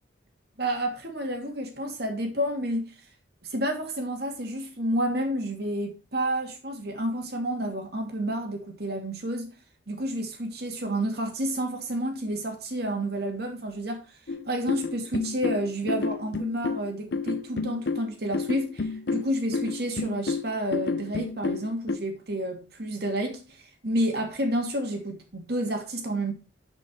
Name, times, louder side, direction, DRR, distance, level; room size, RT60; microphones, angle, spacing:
voice 1, 0.6-2.8 3.4-9.5 9.9-14.0 14.5-26.3, right 1 dB, 55° right, 2.5 m, -30 dB
sound 1, 14.3-22.0, left 4 dB, 60° left, 0.5 m, -30 dB
11.0 x 5.3 x 4.5 m
head